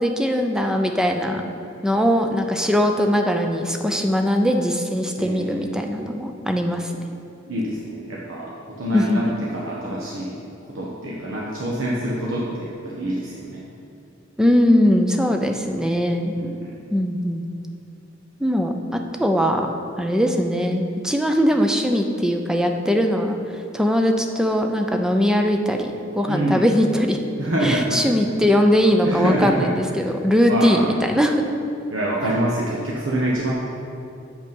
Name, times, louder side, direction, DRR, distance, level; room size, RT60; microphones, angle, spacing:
voice 1, 0.0-1.4 1.8-6.9 8.9-9.3 14.4-16.3 16.9-17.5 18.4-19.7 20.0-23.4 23.7-27.2 27.6-31.5, equal, 5° right, 4 dB, 0.6 m, -20 dB
voice 2, 5.2-5.8 7.5-8.5 8.8-10.3 10.7-13.6 16.4-16.7 26.3-26.6 27.4-28.0 29.0-29.7 30.5-30.9 31.9-33.5, right 1 dB, 75° right, -5 dB, 1.1 m, -25 dB
8.2 x 7.4 x 5.4 m, 2.6 s
head